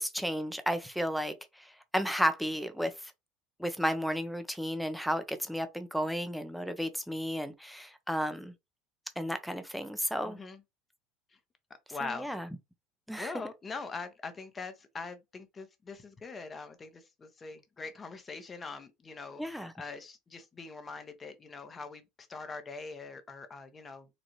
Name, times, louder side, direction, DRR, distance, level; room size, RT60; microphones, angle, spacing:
voice 1, 0.0-3.1 3.6-8.5 9.2-10.4 12.0-12.5 13.1-13.3 19.4-19.7, equal, ahead, 0.7 m, -33 dB
voice 2, 10.2-10.6 11.9-12.3 13.2-22.0 22.3-24.1, left 4 dB, 25° left, 0.9 m, -42 dB
4.0 x 2.4 x 3.0 m
hypercardioid pair, 90°, 0 cm